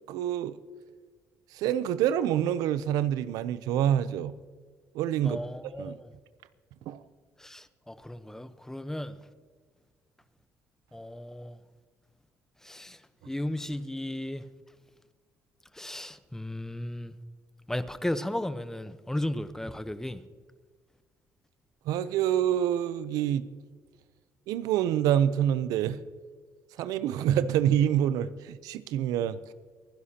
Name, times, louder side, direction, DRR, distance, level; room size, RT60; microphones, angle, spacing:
voice 1, 0.1-0.5 1.5-4.3 4.9-5.4 5.8-6.0 6.9-7.0 21.9-23.5 24.5-26.0 26.8-29.5, right 10 dB, 80° right, 0.5 m, -26 dB
voice 2, 5.2-6.1 7.4-9.2 10.9-11.6 12.6-14.4 15.7-17.1 17.7-20.2, left 1 dB, 5° left, 0.9 m, -35 dB
27.0 x 11.0 x 2.9 m
supercardioid pair, 80°, 6 cm